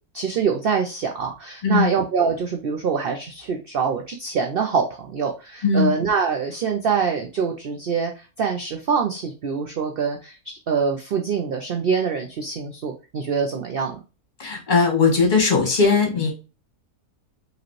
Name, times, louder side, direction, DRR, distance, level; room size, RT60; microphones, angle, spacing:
voice 1, 0.1-14.0, right 6 dB, 65° right, 3 dB, 0.5 m, -24 dB
voice 2, 14.4-16.3, left 4 dB, 35° left, 2 dB, 1.4 m, -19 dB
4.9 x 3.1 x 3.1 m, 0.31 s
omnidirectional pair, 1.6 m